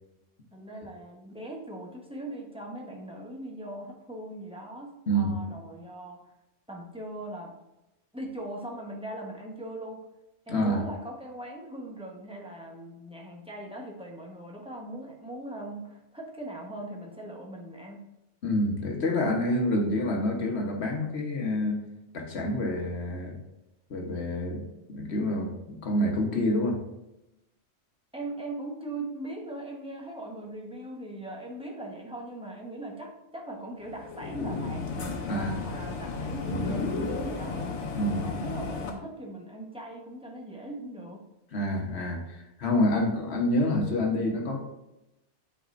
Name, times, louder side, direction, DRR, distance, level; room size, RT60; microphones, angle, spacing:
voice 1, 0.5-6.3 6.7-7.5 8.1-10.1 10.5-18.0 28.1-37.7 38.2-41.2, right 1 dB, 5° right, -1 dB, 1.0 m, -40 dB
voice 2, 10.5-10.8 18.4-21.8 22.1-23.4 23.9-26.8 35.3-35.6 37.9-38.3 41.5-44.6, left 1 dB, 70° left, 1 dB, 1.5 m, -27 dB
sound 1, 33.9-38.9, left 3 dB, 90° left, 1.3 m, -33 dB
8.6 x 5.0 x 2.6 m, 0.91 s
omnidirectional pair, 1.2 m